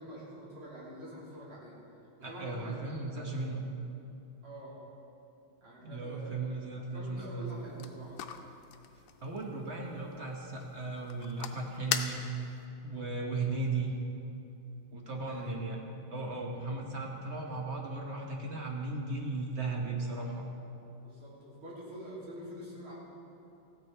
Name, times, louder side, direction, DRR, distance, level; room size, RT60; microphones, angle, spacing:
voice 1, 0.0-1.8 2.2-3.0 4.4-4.8 5.6-6.5 6.9-8.1 15.2-15.6 21.0-22.9, equal, 75° right, -7 dB, 3.8 m, -46 dB
voice 2, 2.2-3.7 5.8-7.5 9.2-12.4 12.8-13.9 14.9-15.8 16.1-20.5, right 3 dB, 40° right, 0 dB, 1.0 m, -36 dB
sound 1, 7.4-12.7, left 9 dB, 85° left, 1.6 m, -41 dB
14.5 x 9.6 x 4.5 m, 2.8 s
omnidirectional pair, 2.4 m